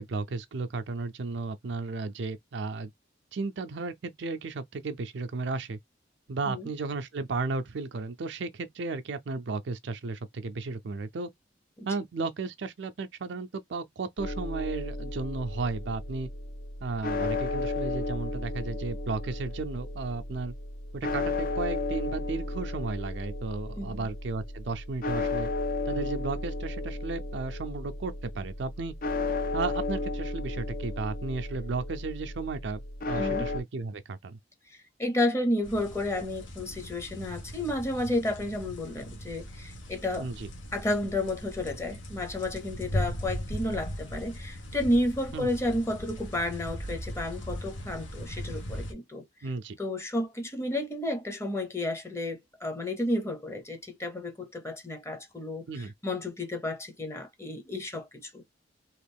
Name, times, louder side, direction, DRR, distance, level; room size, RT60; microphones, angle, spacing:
voice 1, 0.0-2.9 3.3-5.8 6.3-11.3 11.9-16.3 16.8-20.5 20.9-25.5 25.9-28.9 29.5-34.4 40.2-40.5 45.3-45.5 49.4-49.8 55.7-55.9, right 3 dB, 65° right, 0.5 m, -34 dB
sound 1, 14.2-33.6, left 2 dB, 45° left, 0.5 m, -34 dB
voice 2, 23.7-24.1 33.2-33.5 35.0-40.3 40.7-49.3 49.8-58.4, left 1 dB, 15° left, 0.8 m, -31 dB
sound 2, 35.6-48.9, equal, 80° left, 1.1 m, -38 dB
3.0 x 2.5 x 3.3 m
head